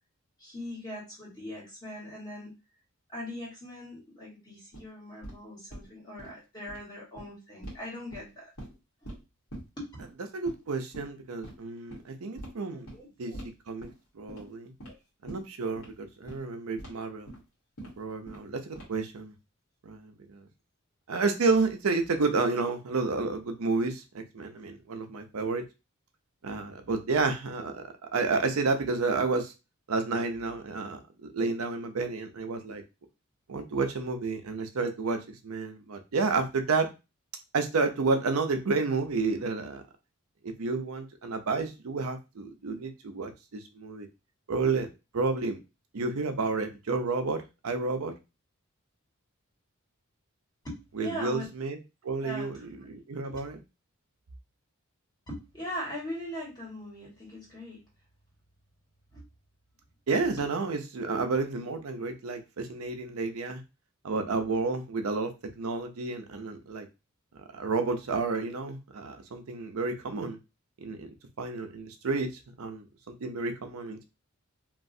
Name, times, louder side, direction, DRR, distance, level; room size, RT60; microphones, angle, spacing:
voice 1, 0.4-2.5 3.1-8.5 9.0-9.1 9.8-9.9 12.9-13.5 14.3-14.4 14.8-15.0 50.6-51.5 52.2-52.5 53.2-53.4 55.3-57.8 59.1-59.2, left 1 dB, 20° left, -4 dB, 1.3 m, -40 dB
sound 1, 4.7-4.8 5.2-5.4 5.7-5.9 6.2-6.3 6.6-6.8 7.2-7.3 7.6-7.8 8.1-8.7 9.0-9.2 9.5-9.6 10.0-10.1 10.4-10.6 10.9-11.1 11.4-11.5 11.9-12.0 12.4-12.5 12.9-13.0 13.3-13.5 13.8-14.0 14.3-14.5 14.8-14.9 15.3-15.4 15.7-15.9 16.3-16.4 16.8-16.9 17.3-17.4 17.8-17.9 18.3-18.5 18.7-19.1, right 1 dB, 80° left, 1.4 m, -43 dB
voice 2, 10.3-12.9 13.2-13.3 13.7-13.9 14.1-14.7 15.2-17.3 18.0-19.3 19.8-20.5 21.1-25.6 26.4-27.8 28.1-29.5 29.9-31.0 31.3-32.8 33.5-36.9 37.5-39.8 40.4-44.1 44.5-44.9 45.1-45.6 45.9-48.1 51.0-51.8 52.0-53.6 60.1-63.6 64.0-66.9 67.5-70.4 70.8-71.1 71.4-74.1, right 4 dB, 75° right, 6 dB, 0.6 m, -30 dB
3.0 x 2.4 x 2.6 m, 0.26 s
head